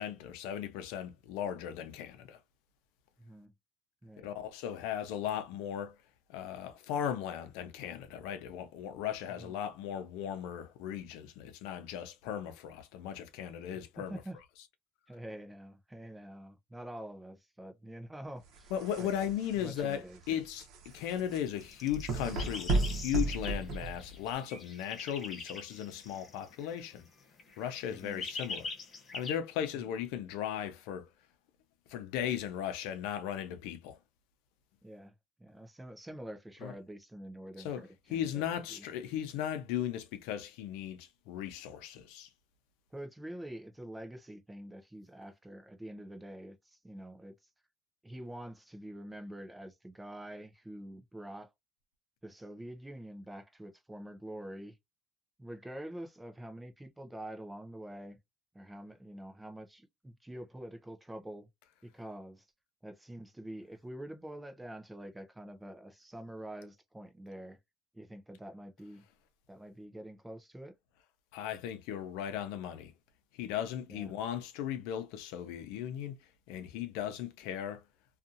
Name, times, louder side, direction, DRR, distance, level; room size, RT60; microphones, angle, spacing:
voice 1, 0.0-2.4 4.2-5.9 6.3-14.2 18.7-20.6 20.9-27.1 27.6-28.7 29.1-31.1 31.9-34.0 36.6-36.7 37.6-37.8 38.1-42.3 71.3-72.9 73.3-76.1 76.5-77.8, left 10 dB, 75° left, 0.6 m, -37 dB
voice 2, 3.2-3.5 4.0-4.3 9.4-9.6 13.7-14.4 15.1-18.7 19.0-19.3 19.6-20.4 27.9-28.2 29.8-29.9 34.8-35.1 35.4-38.9 42.9-47.3 48.0-51.5 52.2-54.8 55.4-58.2 58.5-61.5 61.8-62.5 62.8-67.6 67.9-69.0 69.5-70.7 73.9-74.1, right 1 dB, 5° right, 0.5 m, -46 dB
sound 1, 18.4-24.3, right 2 dB, 55° right, 0.9 m, -35 dB
sound 2, 21.0-27.1 27.4-29.4, left 4 dB, 25° left, 0.8 m, -44 dB
2.7 x 2.4 x 2.4 m
cardioid pair, 145°, 0 cm